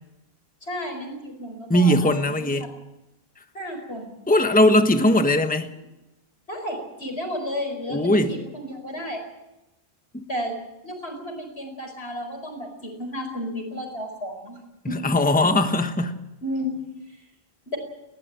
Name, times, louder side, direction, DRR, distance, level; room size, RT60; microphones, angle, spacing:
voice 1, 0.6-2.7 3.5-4.2 6.5-9.2 10.3-10.5 10.8-14.6 14.9-15.1 16.4-16.8 17.7-17.8, equal, 85° left, 6 dB, 5.0 m, -32 dB
voice 2, 1.7-2.7 4.3-5.7 7.9-8.4 10.1-10.2 14.8-16.2, left 1 dB, 10° left, 7 dB, 1.2 m, -20 dB
20.5 x 17.5 x 8.9 m, 0.97 s
omnidirectional pair, 1.1 m